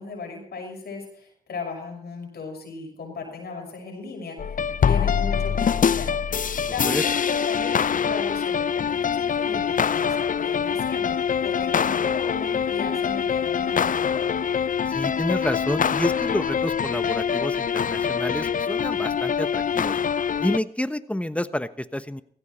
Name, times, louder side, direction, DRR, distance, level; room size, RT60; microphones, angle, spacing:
voice 1, 0.0-6.1 6.7-14.4, left 4 dB, 85° left, 1 dB, 6.0 m, -36 dB
sound 1, 4.4-20.6, left 7 dB, 55° left, 0.5 m, -24 dB
voice 2, 14.9-20.0 20.4-22.2, left 1 dB, 10° left, 12 dB, 1.2 m, -29 dB
17.0 x 15.5 x 4.4 m, 0.63 s
cardioid pair, 40°, 16 cm